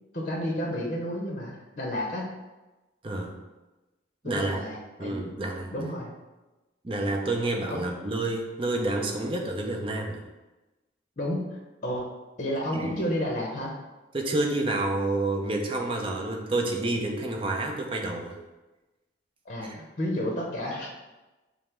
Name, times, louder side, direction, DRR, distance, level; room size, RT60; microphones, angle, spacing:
voice 1, 0.1-2.3 4.2-5.2 5.7-6.1 7.7-7.8 11.2-12.1 12.4-13.7 19.4-20.9, equal, 40° left, -2 dB, 0.7 m, -31 dB
voice 2, 3.0-3.3 4.2-4.6 5.0-5.7 6.8-10.2 12.7-13.0 14.1-18.4, right 2 dB, 30° right, 2 dB, 0.5 m, -29 dB
5.4 x 2.0 x 4.4 m, 1.1 s
head